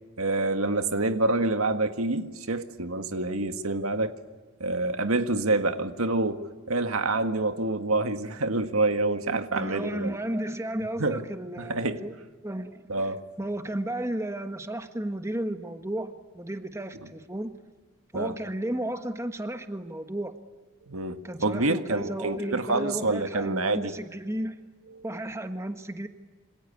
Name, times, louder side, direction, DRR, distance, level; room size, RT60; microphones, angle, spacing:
voice 1, 0.2-4.1 4.6-6.4 6.7-10.1 11.0-11.2 11.6-12.0 12.9-13.2 18.1-18.4 20.9-23.9 24.9-25.0, right 2 dB, 80° right, 8 dB, 1.8 m, -27 dB
voice 2, 9.5-12.1 12.4-12.9 13.4-17.5 18.1-20.3 21.2-24.6 25.0-26.1, right 1 dB, 15° right, 7 dB, 1.4 m, -33 dB
27.5 x 25.0 x 8.6 m, 1.3 s
head